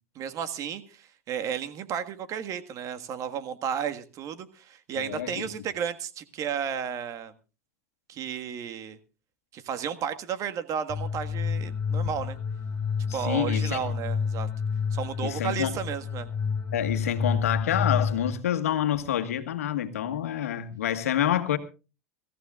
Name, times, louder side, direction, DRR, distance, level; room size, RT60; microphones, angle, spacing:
voice 1, 0.1-7.3 8.1-9.0 9.5-12.4 13.1-14.5 14.9-16.3, right 8 dB, 45° right, 1.6 m, -33 dB
voice 2, 4.9-5.5 13.1-13.8 15.2-15.8 16.7-21.6, left 10 dB, 90° left, 1.5 m, -28 dB
sound 1, 10.9-18.3, left 6 dB, 30° left, 7.1 m, -29 dB
24.5 x 14.5 x 2.4 m
hypercardioid pair, 100°, 8 cm